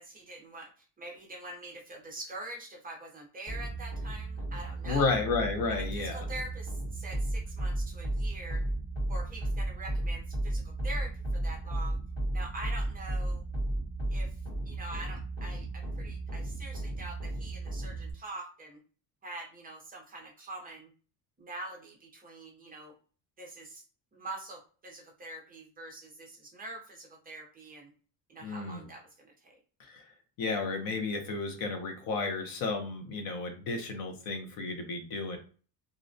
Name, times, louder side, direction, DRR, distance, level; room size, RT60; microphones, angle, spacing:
voice 1, 0.0-5.2 5.8-8.6 9.1-12.0 12.3-13.4 14.1-18.8 19.2-20.9 21.4-22.9 23.4-23.8 24.1-27.9 28.3-29.6, right 2 dB, 20° right, -1 dB, 0.5 m, -44 dB
sound 1, 3.5-18.1, right 1 dB, 20° left, 1.0 m, -34 dB
voice 2, 4.9-6.3 28.4-28.8 29.8-30.0 30.4-35.4, left 3 dB, 55° left, 5 dB, 0.7 m, -32 dB
2.4 x 2.1 x 2.5 m, 0.39 s
cardioid pair, 165°, 42 cm